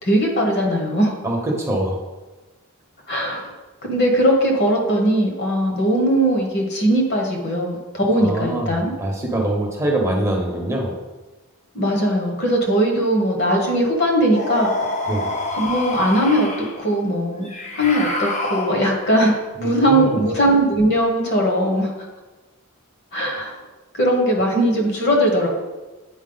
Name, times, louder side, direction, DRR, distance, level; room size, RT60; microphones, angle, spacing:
voice 1, 0.0-1.2 3.1-3.4 3.8-8.9 11.7-14.7 15.6-21.9 23.1-23.5 23.9-25.5, right 1 dB, 50° left, 1 dB, 1.3 m, -19 dB
voice 2, 1.2-2.0 8.1-10.9 15.1-15.3 19.6-20.2, right 1 dB, 15° right, -1 dB, 0.9 m, -24 dB
sound 1, 14.3-16.8 17.4-19.1, left 2 dB, 30° left, 0.8 m, -27 dB
8.5 x 4.5 x 3.9 m, 1.2 s
head